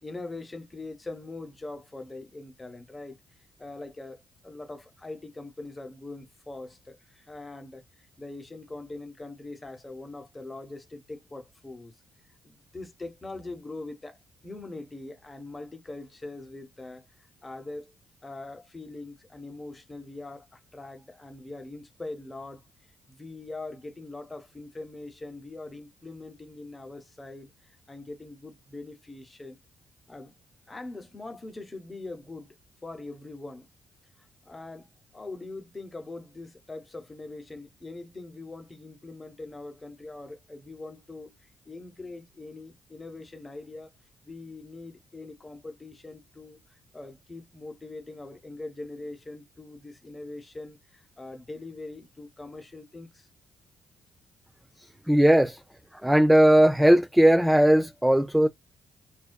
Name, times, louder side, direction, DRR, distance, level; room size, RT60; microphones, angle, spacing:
voice 1, 0.0-3.2 3.6-7.8 8.2-11.9 12.4-14.2 14.4-17.1 17.4-17.9 18.2-22.6 23.1-29.6 30.1-30.3 30.7-32.5 32.8-33.7 34.4-43.9 44.2-53.3, left 2 dB, 25° left, 1.0 m, -42 dB
voice 2, 55.1-55.6 56.0-58.5, right 1 dB, 5° right, 0.3 m, -18 dB
2.5 x 2.2 x 2.2 m
supercardioid pair, 65°, 0 cm